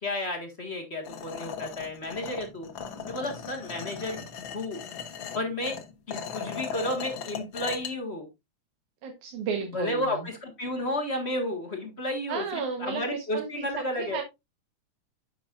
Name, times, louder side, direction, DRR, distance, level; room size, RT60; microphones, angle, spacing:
voice 1, 0.0-2.7 3.1-4.2 4.5-4.8 5.3-5.7 6.1-8.3 9.6-14.2, left 1 dB, 35° left, 3 dB, 1.1 m, -32 dB
sound 1, 1.0-7.9, left 7 dB, 60° left, 1.3 m, -38 dB
voice 2, 9.0-10.1 12.3-13.7 14.0-14.2, right 5 dB, 80° right, 4 dB, 2.6 m, -33 dB
9.7 x 7.1 x 2.5 m, 0.22 s
omnidirectional pair, 3.4 m